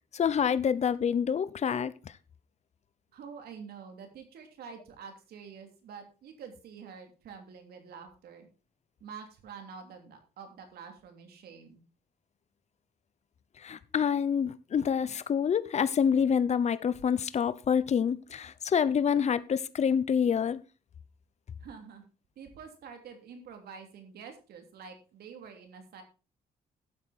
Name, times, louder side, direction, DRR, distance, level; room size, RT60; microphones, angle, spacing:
voice 1, 0.1-1.9 13.6-20.6, left 7 dB, 45° left, 0.8 m, -27 dB
voice 2, 3.1-8.5 9.0-11.8 21.6-22.0 22.4-26.0, right 6 dB, 85° right, 3.0 m, -47 dB
12.0 x 8.4 x 4.3 m
cardioid pair, 105°, 16 cm